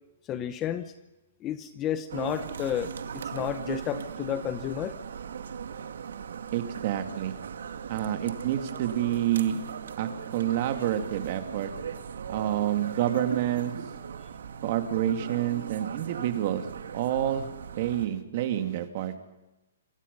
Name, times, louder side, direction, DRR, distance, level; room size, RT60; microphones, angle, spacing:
voice 1, 0.3-0.9 1.4-4.9, left 10 dB, 15° left, 12 dB, 0.8 m, -32 dB
sound 1, 2.1-18.1, right 7 dB, 75° right, 2.3 m, -39 dB
voice 2, 6.5-7.4 7.9-9.6 10.0-11.7 12.3-13.7 14.6-16.6 16.9-17.5 17.8-19.1, right 11 dB, 35° right, 7 dB, 2.4 m, -28 dB
27.0 x 26.0 x 5.5 m, 0.97 s
hypercardioid pair, 175°, 0 cm